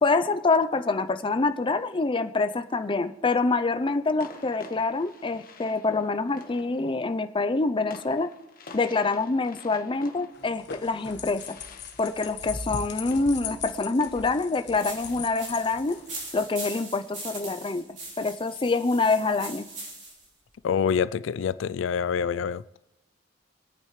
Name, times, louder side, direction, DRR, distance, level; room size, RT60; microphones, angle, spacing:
voice 1, 0.0-8.3 8.7-11.6 12.0-16.0 16.3-17.8 18.2-19.7, left 3 dB, 25° left, 0.5 m, -26 dB
sound 1, 3.1-3.3 4.2-17.6, left 3 dB, 50° left, 1.2 m, -50 dB
sound 2, 10.3-16.4, left 5 dB, 65° left, 1.2 m, -39 dB
sound 3, 14.8-20.3, right 2 dB, 40° right, 3.9 m, -41 dB
voice 2, 20.6-22.6, left 7 dB, 80° left, 0.3 m, -26 dB
25.0 x 9.0 x 3.2 m
head